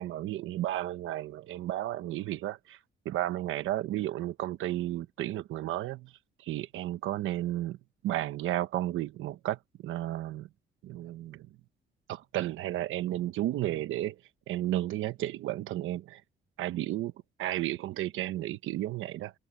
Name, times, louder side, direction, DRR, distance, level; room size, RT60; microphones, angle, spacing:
voice 1, 0.0-2.8 3.0-6.1 6.4-7.8 8.0-10.5 10.8-11.5 12.1-14.2 14.5-16.2 16.6-17.1 17.4-19.3, right 14 dB, 85° right, 1.1 m, -33 dB
cardioid pair, 90°, 20 cm